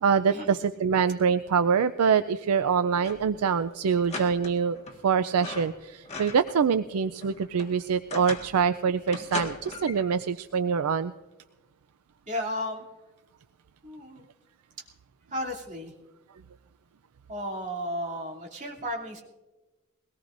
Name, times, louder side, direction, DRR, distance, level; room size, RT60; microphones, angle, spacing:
voice 1, 0.0-4.8 5.0-11.1, right 6 dB, 80° right, 11 dB, 0.4 m, -25 dB
sound 1, 3.0-3.4 3.6-3.7 4.1-5.0 5.3-6.6 7.0-8.6 9.1-10.1, left 3 dB, 30° left, 1.6 m, -39 dB
voice 2, 12.3-12.8 13.8-14.2 15.3-15.9 17.3-19.2, equal, 35° right, -1 dB, 2.7 m, -34 dB
22.5 x 18.5 x 2.6 m, 1.2 s
head